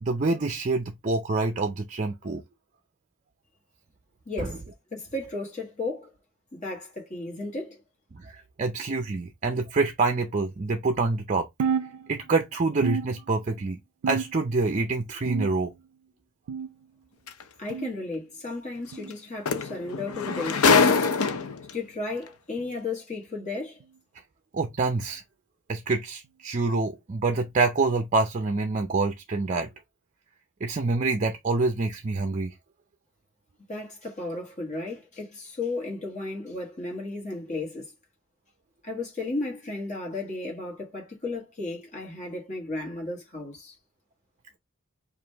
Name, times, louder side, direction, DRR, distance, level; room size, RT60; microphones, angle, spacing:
voice 1, 0.0-2.4 4.4-4.5 8.1-11.5 12.1-13.8 14.1-15.7 24.5-25.2 25.7-29.7 30.6-32.5, right 3 dB, 35° right, 0.5 m, -26 dB
voice 2, 4.2-4.6 4.9-6.1 6.5-7.8 17.6-21.0 21.7-23.8 33.7-37.9 38.8-43.7, left 2 dB, 35° left, 1.4 m, -34 dB
sound 1, 11.6-12.4 12.8-13.6 14.0-14.6 15.3-15.9 16.5-16.9 17.7-17.9 18.9-19.1 20.1-20.3 21.4-21.5 22.6-22.8 23.8-24.0 25.0-25.1 26.2-26.3, right 6 dB, 90° right, 0.4 m, -32 dB
sound 2, 17.3-17.4 19.1-19.2 19.5-21.7 22.6-22.7, left 5 dB, 80° left, 0.6 m, -23 dB
4.9 x 2.5 x 3.3 m
head